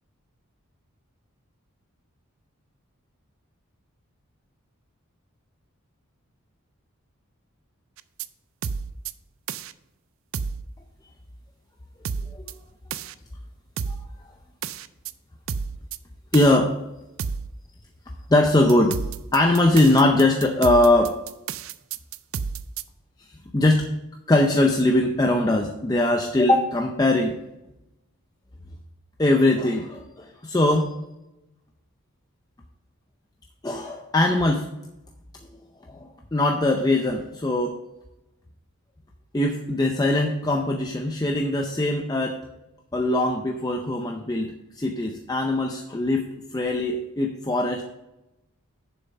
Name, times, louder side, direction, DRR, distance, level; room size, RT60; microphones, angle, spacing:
sound 1, 8.0-8.3 8.6-9.1 9.5-9.7 10.3-10.6 12.0-12.5 12.9-13.1 13.8-14.1 14.6-15.1 15.5-16.0 16.3-16.6 17.2-17.5 18.7-22.8, right 6 dB, 65° right, 0.4 m, -31 dB
voice 1, 16.3-16.8 18.3-19.0 19.3-21.2 23.5-23.9 24.3-27.3 29.2-30.9 33.6-34.7 35.9-37.8 39.3-42.4 42.9-47.9, left 1 dB, 15° left, 3 dB, 0.5 m, -21 dB
7.2 x 6.8 x 5.5 m, 0.94 s
head